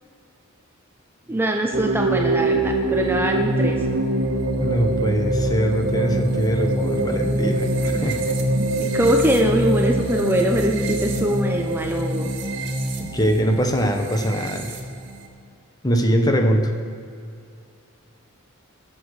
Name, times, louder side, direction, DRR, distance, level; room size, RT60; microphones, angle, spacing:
voice 1, 1.3-3.8 6.8-7.7 8.4-12.3, right 1 dB, 10° right, 2 dB, 0.7 m, -23 dB
sound 1, 1.7-15.3, right 1 dB, 60° right, 1.7 m, -24 dB
voice 2, 4.6-8.3 13.0-14.8 15.8-16.7, equal, 20° left, 4 dB, 1.0 m, -22 dB
21.0 x 7.2 x 4.9 m, 2.4 s
head